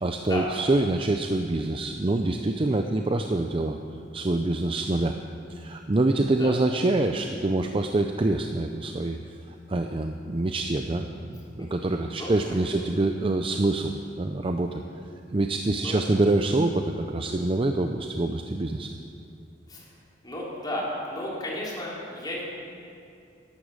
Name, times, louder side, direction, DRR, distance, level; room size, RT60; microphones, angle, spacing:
voice 1, 0.0-3.8 4.1-5.2 5.5-9.2 9.5-14.8 15.3-18.9, right 2 dB, 30° right, 5 dB, 0.5 m, -26 dB
voice 2, 15.8-16.1 19.7-19.9 20.2-22.4, left 1 dB, 20° left, -5 dB, 3.4 m, -33 dB
13.5 x 11.5 x 6.4 m, 2.5 s
head